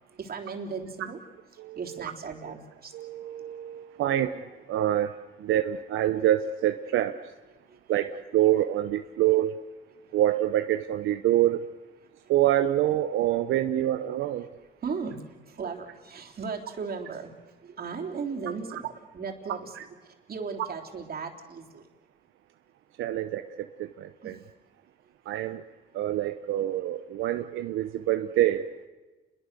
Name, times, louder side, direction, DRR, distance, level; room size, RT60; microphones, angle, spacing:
voice 1, 0.1-1.2 1.7-2.9 7.7-7.8 14.8-17.3 17.6-19.7 20.3-21.9 24.2-24.3, right 5 dB, 50° right, 1 dB, 3.5 m, -36 dB
voice 2, 1.6-2.0 2.9-7.2 7.9-9.6 10.1-11.6 12.3-14.5 18.7-18.8 19.7-19.8 23.0-24.4 25.3-25.6 25.9-28.7, right 13 dB, 85° right, 9 dB, 0.8 m, -26 dB
29.5 x 22.0 x 6.8 m, 1.2 s
cardioid pair, 90°, 20 cm